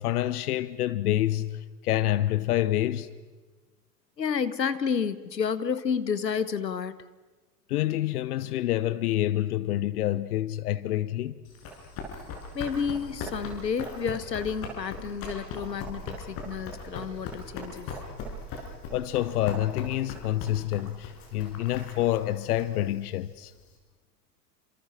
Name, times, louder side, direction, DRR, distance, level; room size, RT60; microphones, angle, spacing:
voice 1, 0.0-3.1 7.7-11.4 18.9-23.5, left 13 dB, 65° left, 1.1 m, -27 dB
voice 2, 4.2-7.0 12.5-17.9, left 6 dB, 85° left, 1.4 m, -30 dB
Run, 11.5-23.7, left 3 dB, 45° left, 7.1 m, -39 dB
29.5 x 27.0 x 5.9 m
figure-of-eight pair, 90°, 49 cm